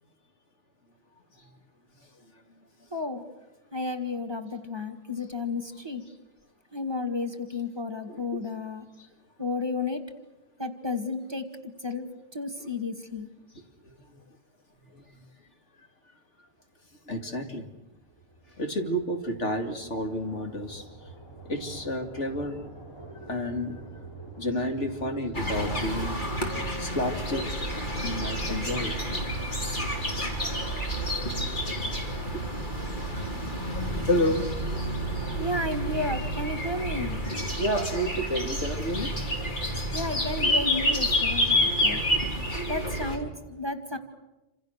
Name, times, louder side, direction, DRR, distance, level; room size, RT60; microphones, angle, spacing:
voice 1, 2.9-3.2 3.7-6.0 6.7-8.9 9.4-10.0 10.6-11.5 11.8-12.1 12.3-13.3 35.4-37.2 39.9-42.0 42.7-44.0, left 3 dB, 20° right, 6 dB, 1.8 m, -32 dB
voice 2, 8.1-8.4 9.0-9.1 12.6-12.7 13.8-14.2 14.9-15.2 17.1-17.7 18.6-21.1 21.4-22.6 23.2-23.8 24.4-26.2 26.8-27.5 28.0-28.9 31.7-31.8 32.3-32.4 33.5-33.6 34.1-34.4 35.2-35.4 37.6-39.1 41.7-42.7, equal, 70° left, 4 dB, 2.8 m, -31 dB
sound 1, 17.5-33.5, right 3 dB, 20° left, 6.6 m, -47 dB
sound 2, 25.3-43.2, equal, 40° left, 3.7 m, -29 dB
28.0 x 26.5 x 6.6 m, 1.0 s
omnidirectional pair, 1.3 m